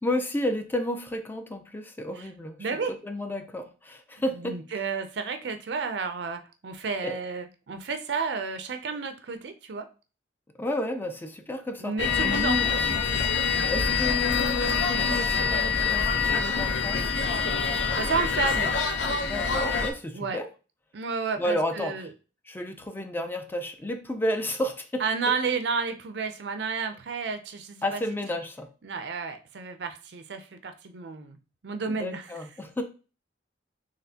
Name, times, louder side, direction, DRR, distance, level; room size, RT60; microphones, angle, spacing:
voice 1, 0.0-2.6 2.9-4.8 7.0-7.2 10.6-11.9 12.2-12.7 13.7-17.1 19.2-20.5 21.4-21.9 22.5-25.0 27.8-28.7 31.9-32.8, left 1 dB, 10° left, 7 dB, 0.4 m, -31 dB
voice 2, 2.6-3.0 4.3-9.9 11.8-13.0 17.7-18.7 20.1-20.4 20.9-22.1 25.0-28.0 28.8-31.4 31.6-32.3, right 5 dB, 65° right, 8 dB, 0.5 m, -31 dB
sound 1, 12.0-19.9, left 5 dB, 75° left, 0.7 m, -25 dB
4.1 x 3.1 x 2.8 m, 0.34 s
head